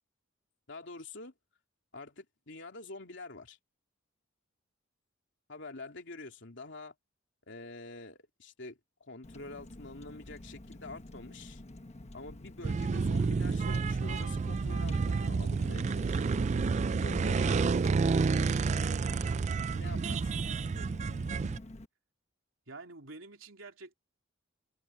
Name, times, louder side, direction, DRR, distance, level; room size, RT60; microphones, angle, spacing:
voice 1, 0.7-1.3 1.9-3.6 5.5-6.9 7.5-11.6 12.1-16.4 17.0-17.8 19.7-20.2, left 2 dB, 65° left, 3.1 m, -46 dB
Car, 9.2-21.9, left 1 dB, 35° left, 1.2 m, -49 dB
sound 1, 12.6-21.6, right 4 dB, 35° right, 0.3 m, -30 dB
voice 2, 20.4-21.0 22.7-23.9, right 3 dB, 85° right, 3.3 m, -49 dB
head